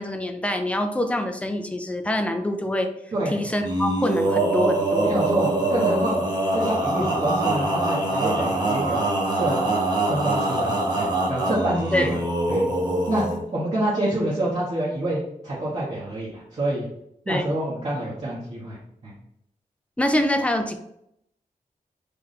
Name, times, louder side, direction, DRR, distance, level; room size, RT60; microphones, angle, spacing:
voice 1, 0.0-2.9 3.3-5.2 11.9-12.2 17.3-17.5 20.0-20.8, left 1 dB, 10° left, 5 dB, 0.5 m, -25 dB
Male singing, 3.6-13.4, right 2 dB, 30° right, 1.1 m, -24 dB
voice 2, 5.0-6.2 6.5-9.6 10.1-12.2 12.5-12.6 13.1-13.2 13.5-16.9 17.3-19.1, right 1 dB, 50° right, -8 dB, 1.1 m, -27 dB
3.4 x 2.6 x 4.1 m, 0.76 s
wide cardioid pair, 75°, 14 cm